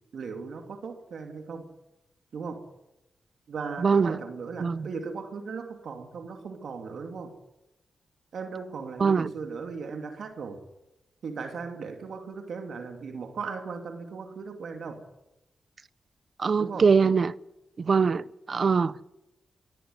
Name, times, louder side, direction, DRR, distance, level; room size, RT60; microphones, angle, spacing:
voice 1, 0.0-1.7 2.3-2.7 3.5-7.3 8.3-10.6 11.2-15.0 16.6-16.9, right 5 dB, 75° right, 2.6 m, -37 dB
voice 2, 3.8-4.2 4.6-4.9 9.0-9.3 16.4-17.3 17.8-19.1, right 5 dB, 55° right, 0.7 m, -23 dB
23.0 x 14.0 x 9.5 m
cardioid pair, 50°, 0 cm